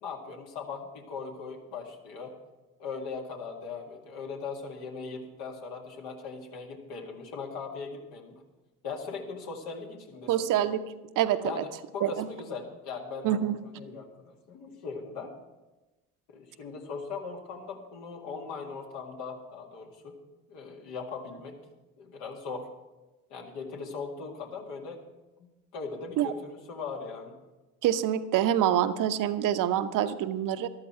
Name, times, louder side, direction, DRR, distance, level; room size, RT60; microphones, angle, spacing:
voice 1, 0.0-2.3 2.8-8.4 8.8-10.5 11.4-15.4 16.3-20.2 20.5-21.6 22.0-22.7 23.3-25.0 25.4-27.4, left 5 dB, 60° left, 2 dB, 2.2 m, -39 dB
voice 2, 10.3-10.8 11.2-11.6 12.0-12.3 13.2-13.6 26.2-26.3 27.8-30.7, right 11 dB, 45° right, 11 dB, 0.9 m, -26 dB
14.0 x 12.5 x 4.5 m, 1.1 s
hypercardioid pair, 65°, 44 cm